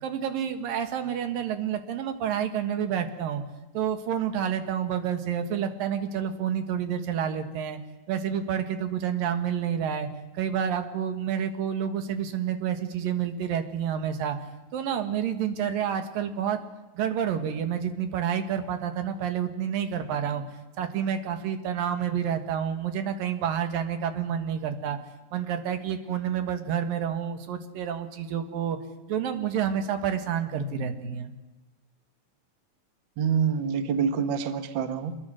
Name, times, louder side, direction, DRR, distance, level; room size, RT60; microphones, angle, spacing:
voice 1, 0.0-3.4 3.7-7.8 8.1-10.1 10.3-14.4 14.7-16.6 16.9-20.4 20.8-25.0 25.3-28.8 29.1-31.3, right 8 dB, 80° right, 7 dB, 3.3 m, -29 dB
voice 2, 33.2-35.2, right 7 dB, 60° right, 9 dB, 1.2 m, -26 dB
27.0 x 22.0 x 6.3 m, 1.2 s
omnidirectional pair, 4.0 m